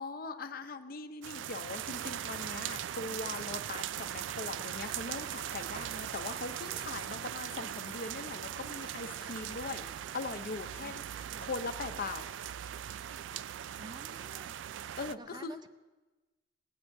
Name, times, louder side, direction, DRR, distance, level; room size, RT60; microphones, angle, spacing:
voice 1, 0.0-12.2 15.0-15.5, left 4 dB, 55° left, 9 dB, 0.6 m, -41 dB
sound 1, 1.2-15.2, right 10 dB, 90° right, 0.3 m, -40 dB
voice 2, 10.8-11.5 13.8-14.6 15.2-15.7, right 2 dB, 25° right, 10 dB, 0.5 m, -51 dB
18.5 x 17.0 x 2.7 m, 1.2 s
head